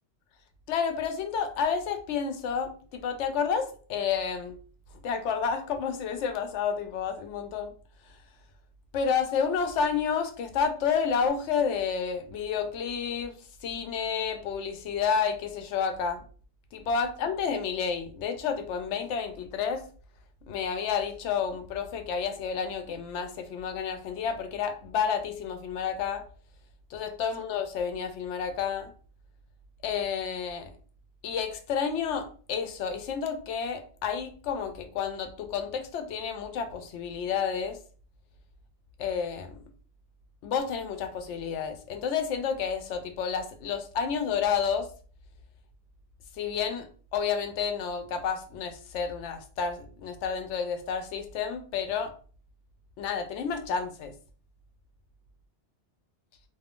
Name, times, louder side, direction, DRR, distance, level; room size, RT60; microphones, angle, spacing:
voice 1, 0.7-4.6 5.0-7.7 8.9-13.4 13.6-16.2 16.7-19.9 20.5-26.2 26.9-28.9 29.8-30.7 31.2-37.8 39.0-39.6 40.4-44.9 46.4-46.9 47.1-52.1 53.0-54.1, left 6 dB, 85° left, 8 dB, 0.9 m, -30 dB
2.6 x 2.4 x 3.5 m, 0.42 s
omnidirectional pair, 1.2 m